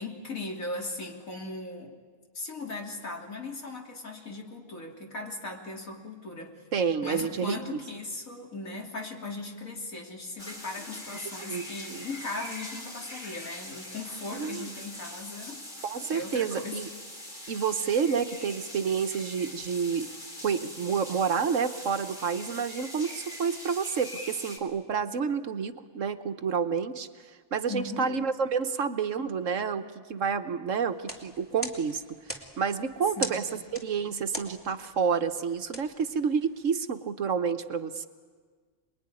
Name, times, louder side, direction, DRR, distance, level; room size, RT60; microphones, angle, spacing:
voice 1, 0.0-2.0 2.4-6.6 7.0-15.7 16.1-16.8 27.7-28.1 33.2-33.6, left 2 dB, 70° left, 1 dB, 3.5 m, -38 dB
voice 2, 6.7-7.6 11.5-12.1 14.3-14.7 15.8-16.9 17.5-20.1 20.4-29.8 30.1-33.5 33.7-38.1, right 6 dB, 65° right, 9 dB, 1.4 m, -29 dB
sound 1, 10.4-24.6, left 1 dB, 30° left, 3.8 m, -42 dB
sound 2, 30.9-36.7, equal, 10° left, 2.7 m, -42 dB
27.0 x 21.5 x 9.9 m, 1.6 s
omnidirectional pair, 1.5 m